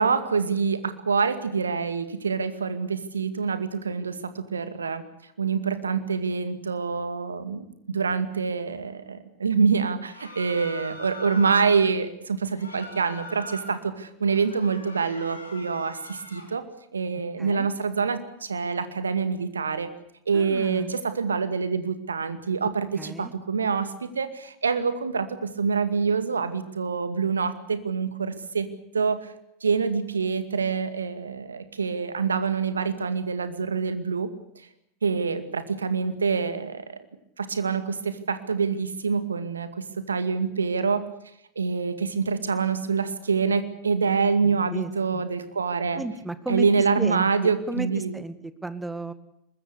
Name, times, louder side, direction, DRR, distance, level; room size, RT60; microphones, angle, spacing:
voice 1, 0.0-5.0 5.4-16.6 16.9-19.9 20.3-29.3 29.6-34.3 35.0-36.8 37.4-41.0 41.6-46.0 46.5-48.2, right 5 dB, 75° right, 11 dB, 2.2 m, -26 dB
sound 1, 10.1-11.8 12.5-13.8 14.2-16.5, left 2 dB, 80° left, 5.1 m, -41 dB
voice 2, 20.3-21.0 22.9-23.3 44.4-45.2 45.9-46.7 47.0-49.1, right 2 dB, 5° right, 13 dB, 2.1 m, -34 dB
23.5 x 21.0 x 8.4 m, 0.76 s
figure-of-eight pair, 85°, 0 cm